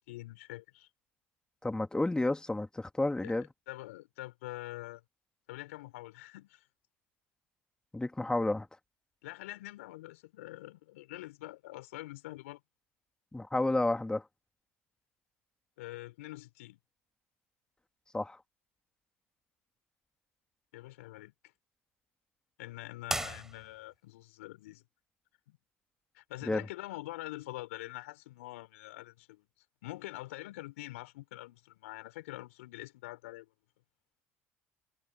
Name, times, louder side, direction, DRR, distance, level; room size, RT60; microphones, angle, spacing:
voice 1, 0.1-0.9 3.2-5.0 5.5-6.6 9.2-12.6 15.8-16.8 20.7-21.3 22.6-24.8 25.5-25.6 26.1-29.5 29.8-33.5, left 18 dB, 75° left, 5.1 m, -45 dB
voice 2, 1.6-3.5 7.9-8.7 13.3-14.2 18.1-18.4 26.4-26.6, left 2 dB, 10° left, 3.1 m, -31 dB
sound 1, 23.0-24.1, right 1 dB, 5° right, 4.2 m, -37 dB
hypercardioid pair, 65°, 7 cm